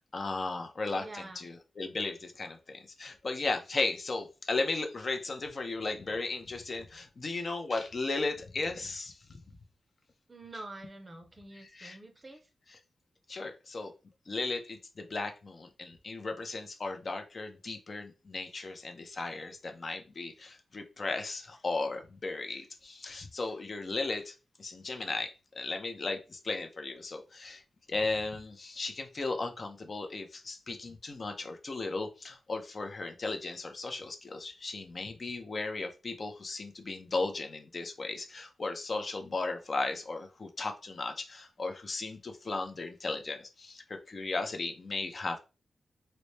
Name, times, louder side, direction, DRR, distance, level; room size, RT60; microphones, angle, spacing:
voice 1, 0.0-9.4 11.8-12.0 13.3-13.9 14.3-27.6 27.9-45.4, left 3 dB, 40° left, 5 dB, 0.5 m, -36 dB
voice 2, 1.0-1.4 10.3-12.5, right 2 dB, 25° right, 5 dB, 0.6 m, -46 dB
4.0 x 2.1 x 3.1 m, 0.30 s
wide cardioid pair, 150°, 0 cm